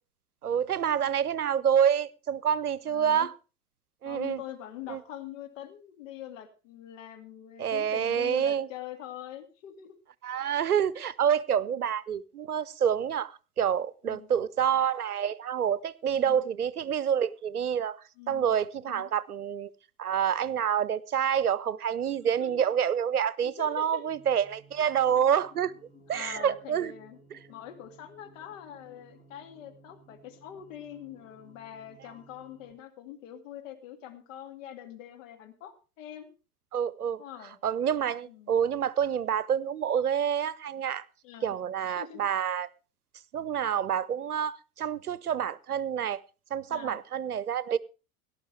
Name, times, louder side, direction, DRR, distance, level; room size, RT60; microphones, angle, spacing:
voice 1, 0.4-3.3 4.0-4.4 4.9-5.0 7.6-8.7 10.2-18.0 18.3-19.7 20.0-25.7 26.1-26.9 36.7-37.2 37.6-41.0 41.4-42.7 43.3-46.2 46.5-47.8, right 8 dB, 80° right, 0.6 m, -27 dB
voice 2, 2.9-3.3 4.0-9.9 11.8-11.9 14.0-14.3 16.1-16.4 18.2-18.5 18.8-19.1 22.2-22.6 23.4-24.0 26.1-27.2 27.5-36.3 37.2-37.6 38.3-38.6 41.2-41.5 41.8-42.2 46.7-47.0, left 11 dB, 55° left, 2.2 m, -44 dB
sound 1, 24.0-32.7, right 1 dB, 35° left, 4.4 m, -57 dB
17.5 x 11.5 x 3.3 m
figure-of-eight pair, 75°, 44 cm